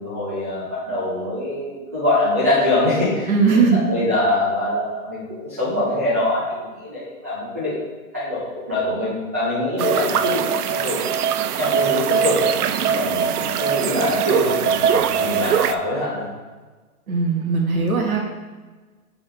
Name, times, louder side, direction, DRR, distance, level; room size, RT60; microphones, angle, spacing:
voice 1, 0.0-7.7 8.1-11.1 11.6-12.5 12.9-16.3, left 1 dB, 10° right, -10 dB, 0.3 m, -24 dB
voice 2, 3.3-3.8 17.1-18.3, right 5 dB, 70° right, 0 dB, 1.5 m, -19 dB
sound 1, 9.8-15.7, right 8 dB, 90° right, 0.5 m, -21 dB
6.9 x 5.2 x 3.3 m, 1.3 s
hypercardioid pair, 140°, 44 cm